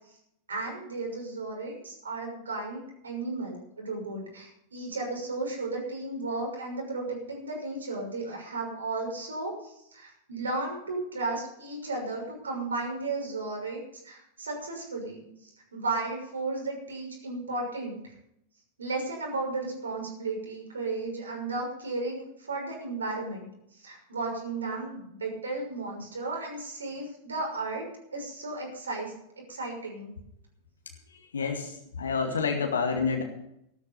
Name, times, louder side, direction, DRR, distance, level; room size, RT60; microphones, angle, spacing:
voice 1, 0.5-15.3 15.7-18.1 18.8-27.8 28.1-29.1 29.5-30.1, right 3 dB, 70° right, 1 dB, 6.2 m, -34 dB
voice 2, 31.3-33.2, left 5 dB, 70° left, 2 dB, 2.1 m, -28 dB
14.5 x 13.0 x 5.5 m, 0.75 s
figure-of-eight pair, 90°, 0 cm